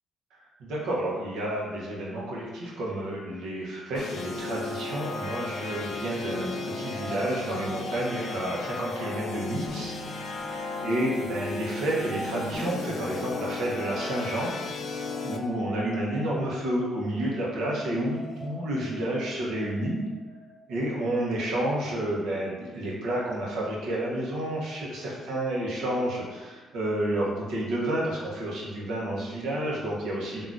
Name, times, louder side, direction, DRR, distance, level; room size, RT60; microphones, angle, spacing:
voice 1, 0.6-10.3 10.8-14.5 15.2-20.0 20.7-30.5, right 1 dB, 85° right, -3 dB, 0.8 m, -30 dB
sound 1, 3.9-15.4, left 3 dB, 70° left, 0.3 m, -35 dB
sound 2, 6.5-11.3 11.5-21.1, left 1 dB, 15° left, 0.7 m, -44 dB
3.5 x 2.3 x 2.5 m, 1.3 s
cardioid pair, 90°, 0 cm